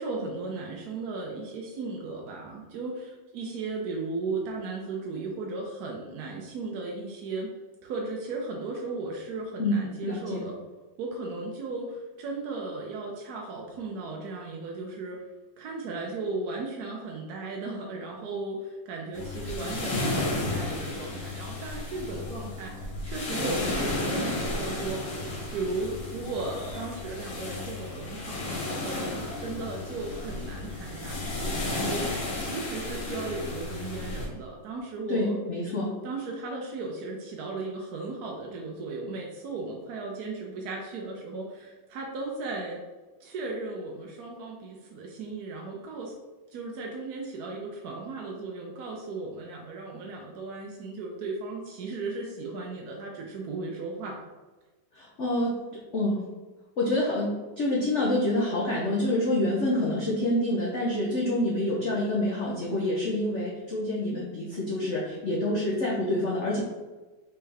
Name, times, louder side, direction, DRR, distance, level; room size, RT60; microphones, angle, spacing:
voice 1, 0.0-7.5 7.8-10.6 11.0-15.2 15.6-25.1 25.5-29.0 29.4-32.0 32.4-35.4 36.0-42.8 43.2-46.1 46.5-54.2, right 3 dB, 70° right, -1 dB, 0.9 m, -36 dB
voice 2, 9.6-10.4 35.1-36.0 54.9-55.6 55.9-56.2 56.8-66.6, left 1 dB, 70° left, -3 dB, 0.6 m, -27 dB
sound 1, 19.1-34.3, left 2 dB, 90° left, 2.0 m, -33 dB
4.3 x 3.5 x 3.3 m, 1.2 s
omnidirectional pair, 2.2 m